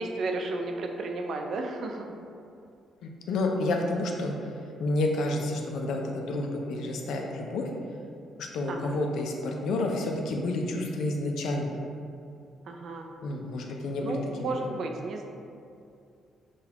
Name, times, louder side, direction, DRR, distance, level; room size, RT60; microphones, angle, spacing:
voice 1, 0.0-2.1 8.7-9.0 12.7-13.1 14.0-15.2, right 2 dB, 60° right, 3 dB, 0.3 m, -33 dB
voice 2, 3.0-4.3 4.8-7.6 8.4-11.8 13.2-14.5, left 2 dB, 80° left, 1 dB, 0.4 m, -30 dB
3.8 x 2.3 x 2.8 m, 2.5 s
cardioid pair, 90°, 0 cm